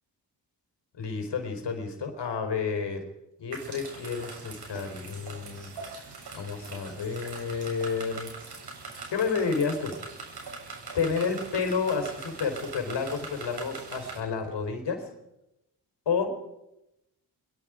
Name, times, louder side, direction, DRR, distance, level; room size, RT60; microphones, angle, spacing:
voice 1, 0.9-3.0 3.4-5.7 6.0-8.3 8.9-10.0 10.9-15.1 16.1-16.3, left 5 dB, 75° left, 6 dB, 4.4 m, -30 dB
sound 1, 3.5-14.2, right 4 dB, 65° right, 7.7 m, -42 dB
23.0 x 22.5 x 5.1 m, 0.91 s
cardioid pair, 60°, 42 cm